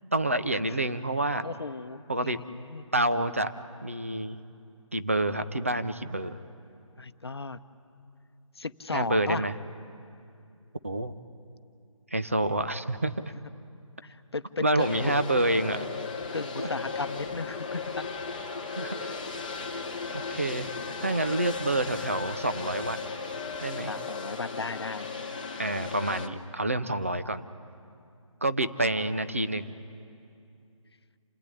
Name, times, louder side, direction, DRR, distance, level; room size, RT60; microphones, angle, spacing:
voice 1, 0.1-1.5 2.1-2.4 2.9-3.5 3.8-4.4 4.9-6.4 8.9-9.5 10.8-11.1 12.1-13.1 14.6-15.9 16.6-16.7 18.8-19.1 20.1-20.7 21.0-23.0 23.6-23.9 25.6-27.5 28.4-29.7, right 1 dB, 25° right, 11 dB, 0.5 m, -28 dB
voice 2, 1.4-2.9 7.0-7.6 8.6-9.4 14.0-15.2 16.3-18.0 19.1-19.2 23.9-25.1, left 3 dB, 50° left, 10 dB, 0.9 m, -35 dB
sound 1, 14.8-26.3, left 4 dB, 15° left, 0.8 m, -36 dB
28.0 x 15.5 x 9.8 m, 2.5 s
figure-of-eight pair, 180°, 17 cm